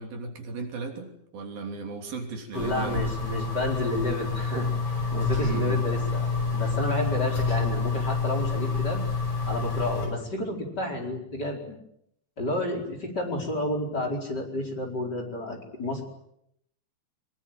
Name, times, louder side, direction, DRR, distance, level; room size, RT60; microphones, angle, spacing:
voice 1, 0.0-3.1 5.4-5.8, right 4 dB, 70° right, 4 dB, 4.9 m, -36 dB
sound 1, 2.5-10.1, left 4 dB, 40° left, 8.3 m, -28 dB
voice 2, 2.5-6.3 6.5-9.0 9.4-11.7 12.4-16.0, left 1 dB, 25° left, 3 dB, 5.1 m, -30 dB
24.0 x 23.0 x 9.1 m, 0.76 s
omnidirectional pair, 4.5 m